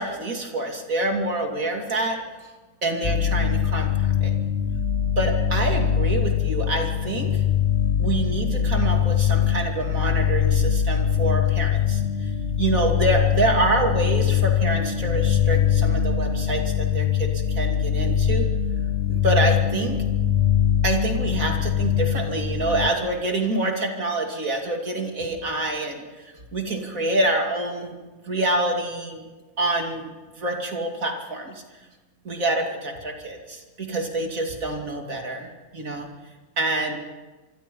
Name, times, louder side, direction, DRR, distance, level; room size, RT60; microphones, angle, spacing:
voice 1, 0.0-2.2 2.8-4.3 5.2-7.4 8.0-12.3 12.6-18.5 19.1-20.0 20.8-28.0 28.2-29.2 29.6-30.1 30.4-31.6 32.2-36.1 36.6-37.0, right 2 dB, 65° right, 2 dB, 3.2 m, -26 dB
sound 1, 3.0-22.9, left 9 dB, 45° left, 1.5 m, -22 dB
26.5 x 24.0 x 5.5 m, 1.3 s
omnidirectional pair, 1.6 m